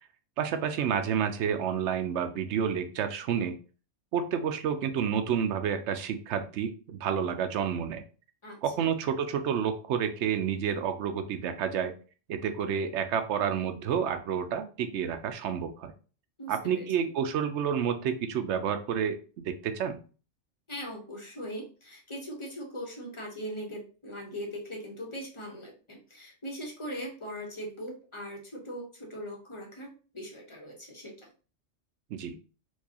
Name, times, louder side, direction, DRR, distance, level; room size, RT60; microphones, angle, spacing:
voice 1, 0.4-3.5 4.1-8.0 8.6-11.9 12.3-15.9 16.5-20.0 32.1-32.4, right 8 dB, 75° right, 8 dB, 0.8 m, -29 dB
voice 2, 8.4-8.9 16.4-17.1 20.7-31.3, equal, 25° left, -1 dB, 0.9 m, -40 dB
4.5 x 2.3 x 2.8 m, 0.37 s
omnidirectional pair, 1.2 m